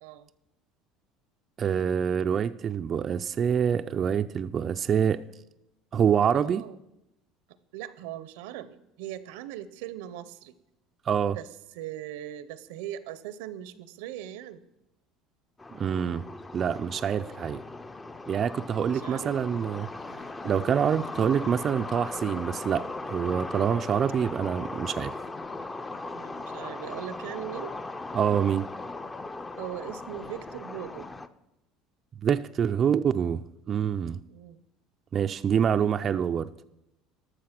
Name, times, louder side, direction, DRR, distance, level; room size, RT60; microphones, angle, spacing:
voice 1, 1.6-5.2 5.9-6.6 11.1-11.4 15.7-16.3 16.5-17.6 18.3-19.9 20.4-25.2 28.1-28.7 32.2-34.2 35.1-36.5, right 8 dB, 35° right, 9 dB, 0.3 m, -26 dB
voice 2, 6.3-6.8 7.7-10.5 11.3-11.5 11.7-14.6 18.8-19.3 20.1-20.3 26.1-27.8 29.6-31.1 34.3-34.6, right 12 dB, 85° right, 15 dB, 0.6 m, -40 dB
sound 1, 15.6-31.3, left 2 dB, 15° left, 0.5 m, -38 dB
12.5 x 6.5 x 5.8 m, 0.88 s
cardioid pair, 125°, 0 cm